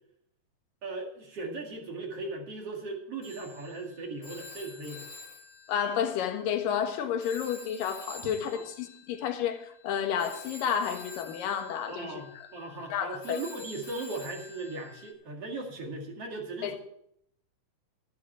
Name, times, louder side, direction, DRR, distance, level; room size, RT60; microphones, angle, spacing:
voice 1, 0.8-5.1 8.2-8.6 11.9-16.8, right 2 dB, 45° right, 2.6 m, -38 dB
Telephone, 3.2-6.9 7.2-15.1, left 3 dB, 35° left, 3.3 m, -49 dB
voice 2, 5.7-12.2 12.9-13.4 16.6-16.8, left 8 dB, 65° left, 2.9 m, -31 dB
14.0 x 11.0 x 4.4 m
omnidirectional pair, 4.7 m